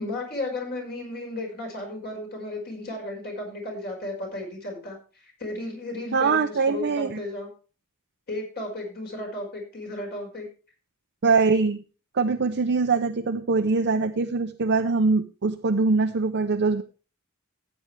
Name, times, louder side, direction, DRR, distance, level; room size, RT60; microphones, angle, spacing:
voice 1, 0.0-7.5 8.3-10.5, left 2 dB, 50° left, 1 dB, 5.3 m, -34 dB
voice 2, 6.1-7.2 11.2-11.8 12.1-16.8, right 4 dB, 55° right, 5 dB, 0.7 m, -23 dB
15.0 x 8.8 x 3.4 m, 0.34 s
head